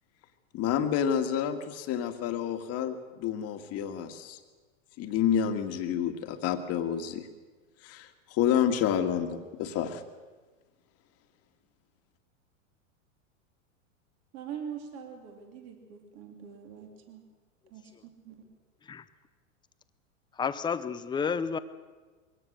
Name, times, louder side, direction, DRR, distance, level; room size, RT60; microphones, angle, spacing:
voice 1, 0.5-4.4 5.0-7.3 7.8-10.0, left 9 dB, 35° left, 7 dB, 1.9 m, -29 dB
voice 2, 14.3-17.2 17.7-18.4, right 8 dB, 40° right, 3 dB, 3.5 m, -43 dB
voice 3, 20.4-21.6, left 6 dB, 10° left, 13 dB, 0.6 m, -30 dB
22.5 x 17.5 x 6.6 m, 1.3 s
hypercardioid pair, 130°, 40 cm